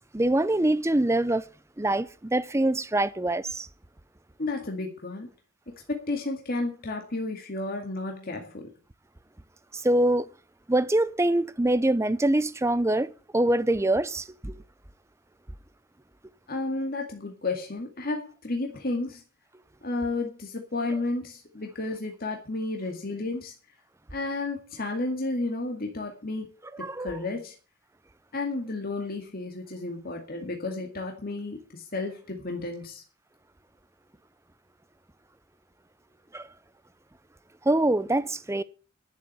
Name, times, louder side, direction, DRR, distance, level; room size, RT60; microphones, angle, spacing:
voice 1, 0.1-1.5 1.8-3.7 9.7-10.3 10.7-14.5 26.8-27.2 36.3-36.5 37.7-38.6, right 1 dB, 15° right, 0.6 m, -24 dB
voice 2, 4.4-5.3 5.9-8.6 16.5-19.2 19.8-23.5 24.1-26.5 26.8-27.5 28.3-33.0, left 2 dB, 45° left, 2.2 m, -32 dB
11.5 x 7.4 x 9.4 m
head